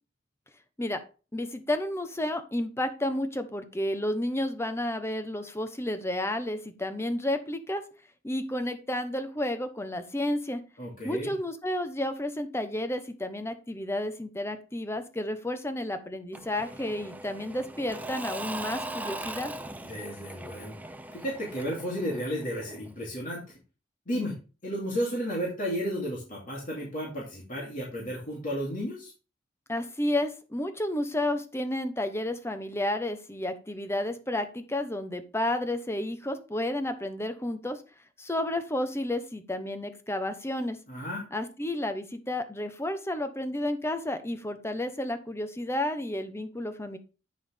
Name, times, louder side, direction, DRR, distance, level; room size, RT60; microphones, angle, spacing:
voice 1, 1.3-7.8 8.2-10.6 11.0-19.5 29.7-37.8 38.2-40.8 41.3-47.0, left 1 dB, 15° left, 9 dB, 0.9 m, -31 dB
voice 2, 10.8-11.3 19.8-20.8 21.1-23.4 24.1-24.4 24.6-29.1 40.9-41.2, equal, 45° left, -5 dB, 2.8 m, -33 dB
Engine / Mechanisms / Drill, 16.3-23.0, right 1 dB, 10° right, 0.5 m, -40 dB
9.2 x 6.3 x 3.5 m, 0.34 s
head